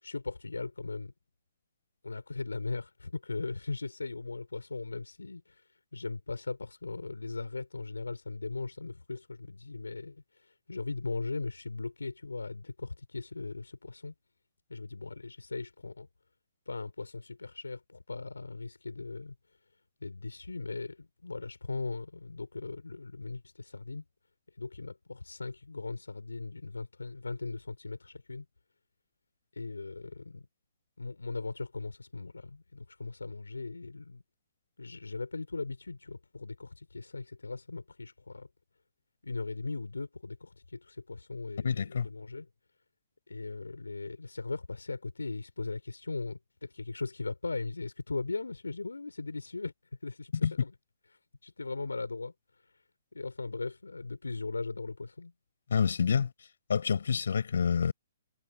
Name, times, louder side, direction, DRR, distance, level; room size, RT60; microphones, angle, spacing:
voice 1, 0.0-1.1 2.0-5.7 5.9-14.1 14.7-16.1 16.7-19.3 20.0-24.0 24.6-28.5 29.5-30.5 31.0-34.2 34.8-38.5 39.2-42.5 43.3-49.7 50.0-50.3 50.6-50.7 51.4-52.3 53.1-55.3, left 3 dB, 85° left, 4.3 m, -38 dB
voice 2, 41.6-42.1 50.4-50.5 55.7-56.3 56.7-57.9, left 6 dB, 65° left, 5.6 m, -27 dB
figure-of-eight pair, 125°, 0 cm